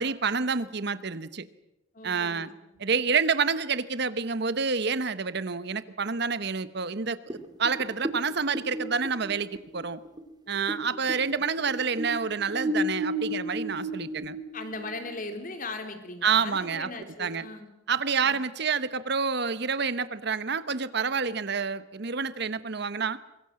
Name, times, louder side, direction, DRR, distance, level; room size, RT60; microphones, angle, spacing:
voice 1, 0.0-1.4 2.0-2.5 2.8-10.0 10.5-14.4 16.2-16.9 17.2-17.4 17.9-23.2, right 5 dB, 60° right, 14 dB, 1.0 m, -28 dB
voice 2, 1.9-2.8 10.5-11.4 14.5-17.7 18.2-18.4, left 2 dB, 45° left, 6 dB, 3.4 m, -39 dB
sound 1, 7.3-10.8 11.1-15.2, equal, 20° right, 2.7 m, -33 dB
24.5 x 22.0 x 7.6 m, 0.94 s
head